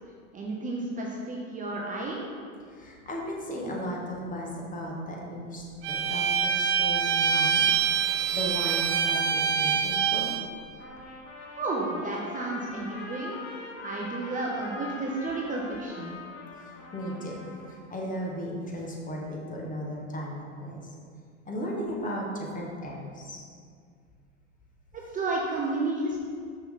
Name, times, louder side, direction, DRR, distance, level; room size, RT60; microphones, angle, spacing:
voice 1, 0.3-2.2 11.6-13.3 13.8-16.1 25.1-26.2, right 2 dB, 20° right, -2 dB, 0.7 m, -31 dB
voice 2, 2.7-7.6 8.3-10.4 16.6-20.8 21.4-23.4, equal, 20° left, -2 dB, 1.2 m, -36 dB
Bowed string instrument, 5.8-10.5, right 7 dB, 60° right, 0.8 m, -25 dB
Trumpet, 10.8-17.9, left 3 dB, 55° left, 1.3 m, -43 dB
5.7 x 5.6 x 3.7 m, 2.1 s
hypercardioid pair, 105°, 39 cm